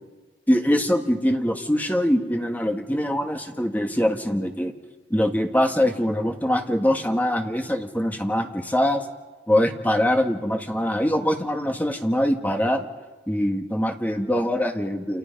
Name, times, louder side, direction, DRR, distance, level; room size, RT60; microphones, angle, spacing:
voice 1, 0.5-4.7 5.1-9.1 9.5-12.9 13.3-15.2, equal, 10° left, 4 dB, 1.7 m, -23 dB
29.5 x 28.5 x 5.4 m, 1.3 s
head